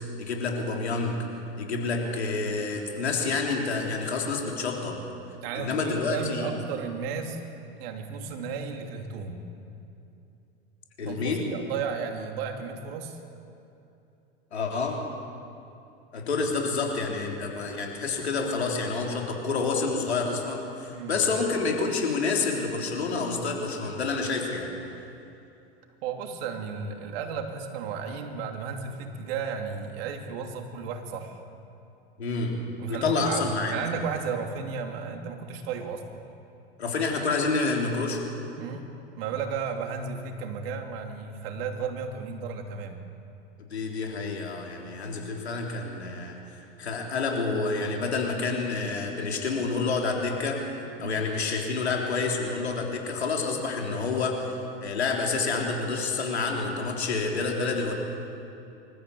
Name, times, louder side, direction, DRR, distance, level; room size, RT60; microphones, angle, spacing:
voice 1, 0.2-1.2 1.6-5.0 5.5-6.5 11.0-11.5 14.5-15.0 16.1-24.7 32.2-32.6 32.9-33.9 36.8-38.2 43.7-46.4 46.8-50.6 51.0-57.9, left 4 dB, 90° left, 0 dB, 3.8 m, -28 dB
voice 2, 5.4-7.4 7.8-9.5 11.0-13.2 16.4-16.5 20.9-21.2 26.0-31.4 32.8-36.2 38.6-38.9 39.2-43.0 51.0-51.3, right 5 dB, 65° right, 4 dB, 3.0 m, -34 dB
25.5 x 14.5 x 8.6 m, 2.8 s
hypercardioid pair, 90°, 32 cm